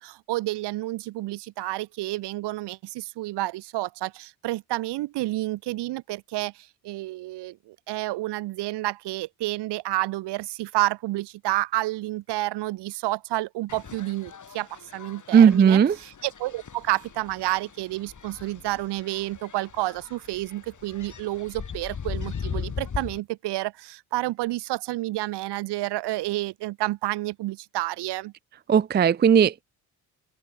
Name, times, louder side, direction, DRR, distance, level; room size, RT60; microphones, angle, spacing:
voice 1, 0.0-28.3, right 18 dB, 75° right, 4.8 m, -30 dB
sound 1, 13.7-23.2, left 6 dB, 45° left, 6.4 m, -39 dB
voice 2, 15.3-16.0 28.7-29.6, right 8 dB, 25° right, 0.5 m, -17 dB
open air
hypercardioid pair, 45°, 41 cm